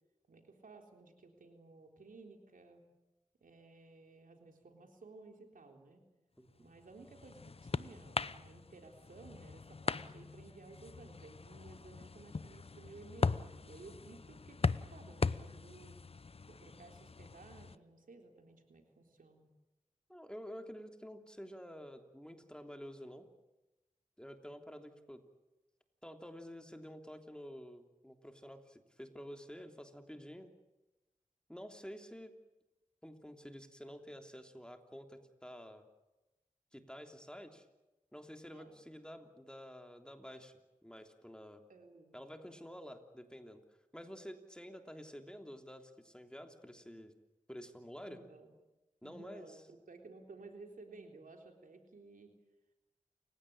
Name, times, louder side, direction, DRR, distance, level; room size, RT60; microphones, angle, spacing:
voice 1, 0.3-2.8 3.4-6.0 6.6-16.0 16.5-19.5 38.4-38.8 41.7-42.2 48.1-48.5 49.0-52.3, right 3 dB, 85° right, 3 dB, 3.6 m, -56 dB
voice 2, 6.4-6.7 20.1-23.2 24.2-25.2 26.0-30.5 31.5-32.3 33.0-35.9 36.7-37.6 38.1-40.5 40.8-41.6 42.1-43.6 43.9-47.1 47.5-48.2 49.0-49.5, equal, 5° left, 5 dB, 3.2 m, -50 dB
sound 1, 6.6-17.8, left 4 dB, 45° left, 0.8 m, -40 dB
29.0 x 16.5 x 8.9 m, 1.0 s
cardioid pair, 45°, 14 cm